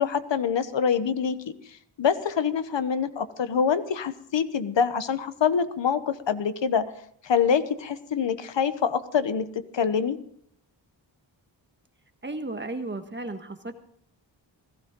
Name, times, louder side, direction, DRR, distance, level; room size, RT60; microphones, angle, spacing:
voice 1, 0.0-1.4 2.0-6.9 7.2-9.5 9.7-10.2, left 7 dB, 65° left, 12 dB, 1.2 m, -25 dB
voice 2, 12.2-13.7, right 2 dB, 25° right, 6 dB, 1.6 m, -34 dB
17.0 x 15.5 x 3.8 m, 0.65 s
wide cardioid pair, 95°, 47 cm